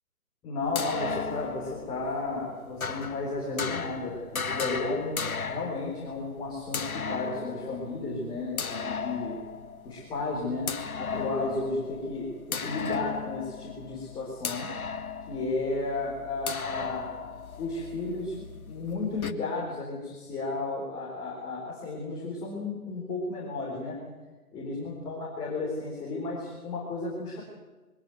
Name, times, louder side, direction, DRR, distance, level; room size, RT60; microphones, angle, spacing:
voice 1, 0.4-9.4 9.8-12.3 12.6-14.7 15.3-17.1 17.6-24.0 24.5-27.4, left 3 dB, 10° left, -5 dB, 4.1 m, -33 dB
sound 1, 0.6-19.3, left 5 dB, 70° left, 1.8 m, -36 dB
22.5 x 17.5 x 9.4 m, 1.2 s
figure-of-eight pair, 155°, 44 cm